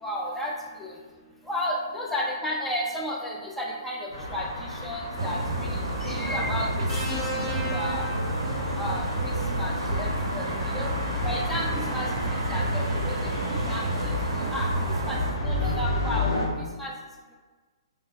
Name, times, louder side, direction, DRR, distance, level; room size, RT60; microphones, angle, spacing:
voice 1, 0.0-0.5 0.8-0.9 1.5-6.7 7.1-8.0 8.8-10.1 10.3-10.9 11.2-11.7 11.9-13.1 13.5-14.1 14.5-14.7 15.1-16.4 16.8-16.9, left 1 dB, 5° left, -3 dB, 0.5 m, -33 dB
sound 1, 4.1-16.5, left 2 dB, 80° left, 1.0 m, -32 dB
sound 2, 5.2-15.3, right 2 dB, 75° right, 0.5 m, -30 dB
sound 3, 6.9-9.1 10.5-10.7, equal, 25° left, 0.9 m, -35 dB
3.6 x 2.5 x 2.3 m, 1.4 s
figure-of-eight pair, 125°, 3 cm